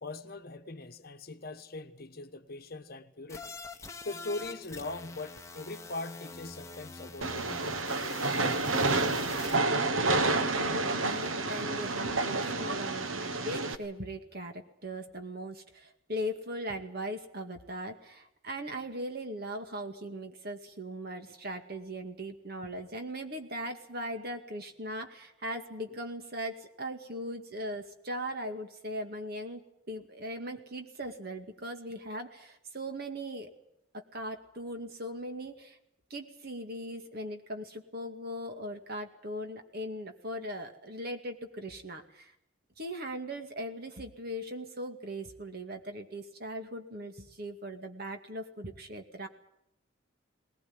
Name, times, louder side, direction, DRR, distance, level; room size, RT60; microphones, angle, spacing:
voice 1, 0.0-7.9, left 2 dB, 45° left, 1.2 m, -41 dB
sound 1, 3.3-9.6, left 3 dB, 15° left, 1.1 m, -45 dB
Train, 7.2-13.7, right 3 dB, 75° right, 1.4 m, -29 dB
voice 2, 10.3-33.5 33.9-35.8 36.1-42.3 42.8-49.3, equal, 45° right, 2.2 m, -39 dB
20.0 x 19.5 x 9.6 m
head